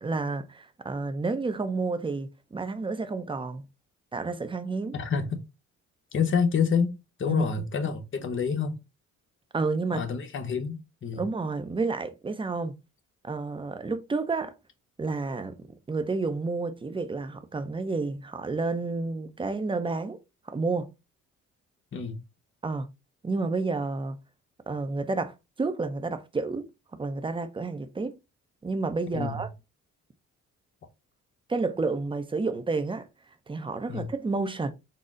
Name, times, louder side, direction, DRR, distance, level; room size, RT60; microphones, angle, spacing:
voice 1, 0.0-3.6 4.1-4.9 7.3-7.5 9.5-10.0 11.2-12.8 13.2-14.6 15.0-15.6 15.9-20.2 20.5-20.9 22.6-22.9 23.2-24.2 24.7-26.7 26.9-28.2 28.6-29.5 31.5-33.1 33.5-34.7, right 3 dB, 15° right, 0.5 m, -30 dB
voice 2, 4.9-5.4 6.1-6.9 7.2-8.8 9.9-11.2 21.9-22.2 29.1-29.4 33.9-34.1, left 6 dB, 40° left, 0.9 m, -28 dB
4.0 x 2.0 x 3.6 m
cardioid pair, 90°, 30 cm